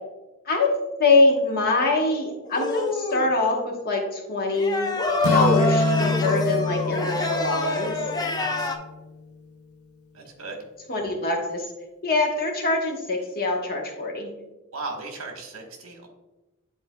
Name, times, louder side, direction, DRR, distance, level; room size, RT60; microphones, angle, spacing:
voice 1, 1.0-4.9 5.3-8.0 10.9-11.7 12.0-14.3, left 2 dB, 45° left, 2 dB, 1.1 m, -23 dB
sound 1, 2.5-3.3 4.5-8.8, left 2 dB, 20° left, 0.5 m, -26 dB
Acoustic guitar / Strum, 5.2-9.2, left 4 dB, 80° left, 0.5 m, -26 dB
voice 2, 8.3-8.7 10.1-10.6 14.7-16.1, right 3 dB, 70° right, 2 dB, 1.2 m, -37 dB
10.0 x 4.3 x 2.2 m, 1.1 s
head